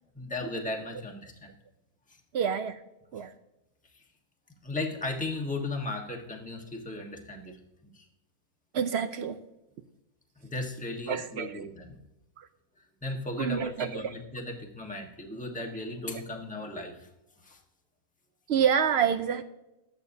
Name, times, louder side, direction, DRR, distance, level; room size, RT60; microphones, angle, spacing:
voice 1, 0.1-1.5 2.1-2.2 3.9-4.0 4.6-7.6 7.8-8.0 10.4-12.0 13.0-17.1 17.4-17.6, left 2 dB, 5° left, 1.1 m, -36 dB
voice 2, 2.3-2.8 3.1-3.3 8.7-9.4 11.1-11.6 12.4-12.5 13.4-14.1 18.5-19.4, right 7 dB, 75° right, 0.6 m, -28 dB
13.0 x 9.2 x 2.7 m
omnidirectional pair, 1.6 m